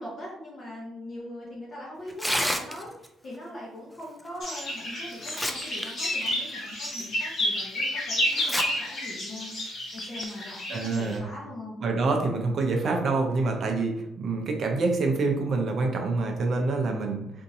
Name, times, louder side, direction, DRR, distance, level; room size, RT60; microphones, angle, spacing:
voice 1, 0.0-9.5 9.9-11.8 12.8-12.9, left 1 dB, 30° left, -5 dB, 0.8 m, -41 dB
Tearing, 2.1-3.1 4.5-4.6 5.1-5.9 6.2-6.3 7.0-7.1 8.3-8.6 9.0-9.1 10.0-10.2, equal, ahead, 0.3 m, -29 dB
sound 1, 4.4-11.2, left 1 dB, 50° left, 1.2 m, -31 dB
voice 2, 10.7-11.2 11.8-17.3, right 3 dB, 45° right, 2 dB, 0.6 m, -26 dB
4.3 x 2.6 x 2.7 m, 0.84 s
cardioid pair, 160°, 0 cm